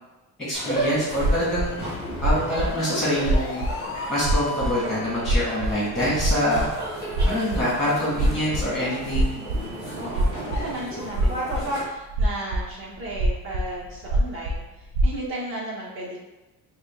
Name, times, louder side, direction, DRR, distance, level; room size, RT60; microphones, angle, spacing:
voice 1, 0.4-1.8 2.2-3.6 4.1-6.7 7.2-9.4, left 1 dB, ahead, -7 dB, 1.3 m, -25 dB
sound 1, 0.5-11.8, right 1 dB, 15° right, 1.4 m, -34 dB
sound 2, 1.1-1.7 2.1-2.7 3.2-3.7 4.2-4.4 4.6-4.7 5.1-5.7 6.1-6.7 7.1-8.7 9.0-9.7 10.1-10.7 11.1-11.6 12.1-15.2, right 1 dB, 75° right, 0.6 m, -23 dB
sound 3, 1.2-5.0, left 3 dB, 40° left, 0.4 m, -36 dB
voice 2, 9.9-16.2, right 1 dB, 35° right, -5 dB, 1.2 m, -35 dB
3.7 x 2.3 x 3.5 m, 1.0 s
cardioid pair, 155°, 37 cm